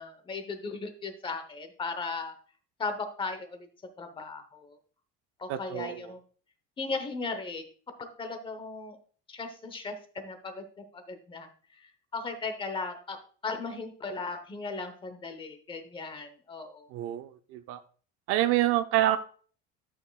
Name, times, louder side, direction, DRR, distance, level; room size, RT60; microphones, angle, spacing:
voice 1, 0.0-2.3 2.8-3.7 4.0-4.8 5.4-6.2 6.8-7.6 8.0-9.0 9.3-13.2 13.4-16.9, left 4 dB, 15° left, 8 dB, 0.9 m, -37 dB
voice 2, 5.5-6.0 16.9-17.8 18.3-19.2, right 14 dB, 50° right, 10 dB, 0.5 m, -27 dB
12.5 x 6.4 x 2.3 m, 0.43 s
cardioid pair, 175°, 29 cm